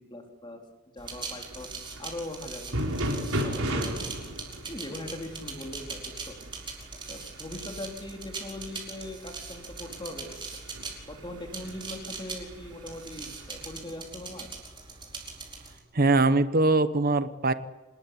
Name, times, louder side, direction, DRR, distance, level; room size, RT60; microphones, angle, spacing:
voice 1, 0.1-0.6 0.9-2.8 3.3-3.9 4.7-6.4 7.1-10.6 11.1-14.5, left 1 dB, 20° left, 3 dB, 3.9 m, -40 dB
sound 1, 1.0-15.8, right 4 dB, 20° right, 4.5 m, -41 dB
sound 2, 1.1-13.8, equal, 70° right, 4.8 m, -37 dB
voice 2, 15.9-17.5, right 2 dB, 40° right, 13 dB, 1.0 m, -22 dB
27.0 x 19.5 x 9.8 m, 1.2 s
head